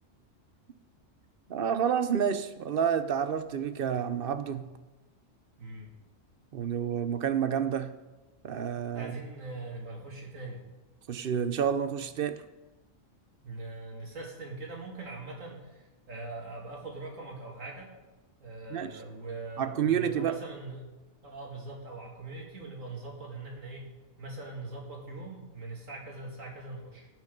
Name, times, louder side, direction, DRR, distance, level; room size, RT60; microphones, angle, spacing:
voice 1, 1.5-4.7 6.5-7.9 8.4-9.1 11.1-12.4 18.7-19.0 19.6-20.3, right 8 dB, 55° right, 11 dB, 0.8 m, -29 dB
voice 2, 5.6-5.9 8.9-10.6 13.4-17.9 18.4-20.9 21.2-23.9 24.2-27.1, right 3 dB, 85° right, -1 dB, 2.7 m, -42 dB
17.5 x 6.1 x 5.2 m, 1.1 s
omnidirectional pair, 1.3 m